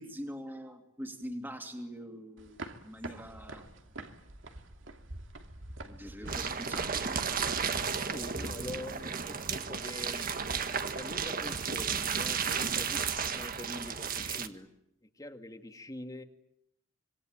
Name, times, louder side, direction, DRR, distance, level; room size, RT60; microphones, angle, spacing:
voice 1, 0.0-2.6 2.8-3.6 5.8-7.2, equal, 10° right, 4 dB, 2.8 m, -43 dB
sound 1, 2.4-7.8, right 2 dB, 70° right, 2.6 m, -46 dB
sound 2, 6.3-14.5, right 6 dB, 45° right, 1.7 m, -33 dB
voice 2, 7.9-10.3 10.7-14.7 15.2-16.2, left 1 dB, 20° left, 6 dB, 2.0 m, -44 dB
26.5 x 23.5 x 9.0 m, 0.80 s
head